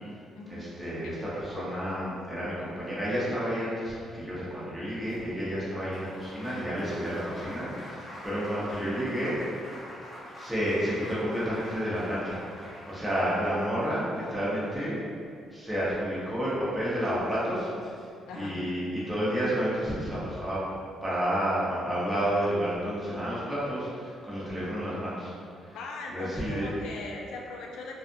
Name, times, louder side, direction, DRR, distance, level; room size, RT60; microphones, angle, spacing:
voice 1, 0.5-1.1 1.4-9.4 10.4-15.0 15.5-18.0 18.4-20.6 21.0-25.3 25.6-25.8 26.1-26.7, equal, 10° right, -10 dB, 0.8 m, -30 dB
Applause, 5.0-15.3 16.7-16.8 17.0-18.0, equal, 25° left, 0.8 m, -46 dB
voice 2, 18.3-18.6 25.7-28.0, left 3 dB, 85° left, 0 dB, 0.4 m, -39 dB
2.5 x 2.4 x 2.5 m, 2.3 s
cardioid pair, 90°, 0 cm